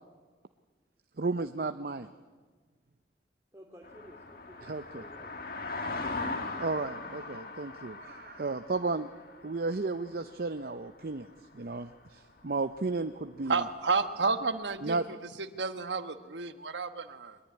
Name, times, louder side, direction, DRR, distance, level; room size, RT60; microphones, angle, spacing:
voice 1, 1.2-2.1 4.6-5.0 6.6-9.1 9.4-11.3 11.5-13.6 14.8-15.1, right 3 dB, 55° right, 9 dB, 0.7 m, -33 dB
voice 2, 3.5-5.4, equal, 15° right, 0 dB, 2.4 m, -54 dB
sound 1, 3.8-11.2 11.7-11.9, left 3 dB, 55° left, 2.1 m, -40 dB
voice 3, 13.5-17.4, right 4 dB, 85° right, 9 dB, 1.3 m, -31 dB
22.5 x 21.0 x 9.7 m, 1.4 s
head